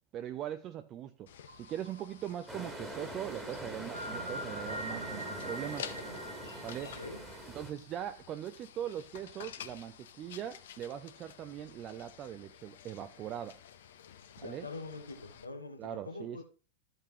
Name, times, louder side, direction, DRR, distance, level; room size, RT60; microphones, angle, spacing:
voice 1, 0.1-1.3 1.6-5.9 6.6-7.0 7.5-13.6 14.4-14.7 15.8-16.4, right 11 dB, 35° right, 0.4 m, -41 dB
sound 1, 1.3-15.4, left 9 dB, 60° left, 0.8 m, -51 dB
sound 2, 1.5-2.8 3.9-7.4, right 1 dB, 75° right, 1.0 m, -43 dB
sound 3, 2.5-7.7, right 1 dB, 10° right, 1.6 m, -43 dB
voice 2, 6.8-7.3 14.3-16.4, left 3 dB, 80° left, 1.1 m, -44 dB
13.0 x 5.3 x 3.0 m
figure-of-eight pair, 90°, 0 cm